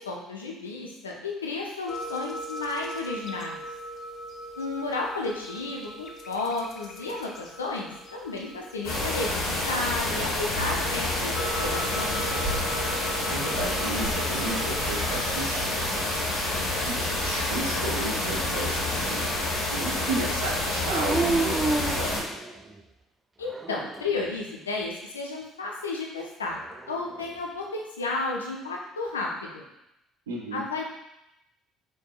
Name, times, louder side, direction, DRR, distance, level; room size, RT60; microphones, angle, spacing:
voice 1, 0.0-3.6 4.6-12.3 23.4-26.6 26.9-29.6 30.5-30.8, left 3 dB, 85° left, -1 dB, 0.6 m, -32 dB
sound 1, 1.9-15.2, equal, 45° left, 0.6 m, -40 dB
sound 2, 8.8-22.2, left 1 dB, 65° left, 1.3 m, -28 dB
voice 2, 13.3-15.9 16.9-22.2 30.3-30.6, right 2 dB, 80° right, -1 dB, 0.6 m, -34 dB
Dog, 20.9-22.8 23.4-24.2 26.5-27.4, right 3 dB, 25° right, 0.5 m, -30 dB
4.5 x 4.3 x 2.3 m, 0.85 s
figure-of-eight pair, 55°, 0 cm